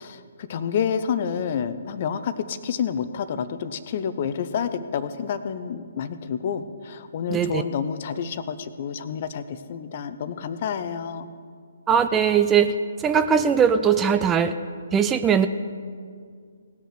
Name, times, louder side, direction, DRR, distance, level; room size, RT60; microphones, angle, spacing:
voice 1, 0.0-11.3, left 7 dB, 40° left, 12 dB, 0.7 m, -29 dB
voice 2, 7.3-7.6 11.9-12.7 13.0-14.5 14.9-15.5, right 7 dB, 15° right, 9 dB, 0.4 m, -20 dB
18.0 x 6.4 x 6.7 m, 2.1 s
figure-of-eight pair, 135°, 0 cm